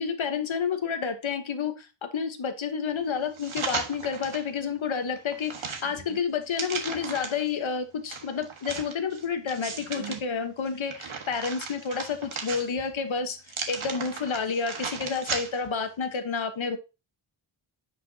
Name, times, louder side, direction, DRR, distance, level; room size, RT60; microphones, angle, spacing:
voice 1, 0.0-16.8, left 6 dB, 75° left, 7 dB, 1.2 m, -30 dB
sound 1, 3.4-4.5 4.9-7.5 8.1-10.2 10.7-13.0 13.4-15.8 16.1-16.2, right 5 dB, 80° right, 1.5 m, -36 dB
10.0 x 5.9 x 2.8 m, 0.28 s
wide cardioid pair, 100°, 47 cm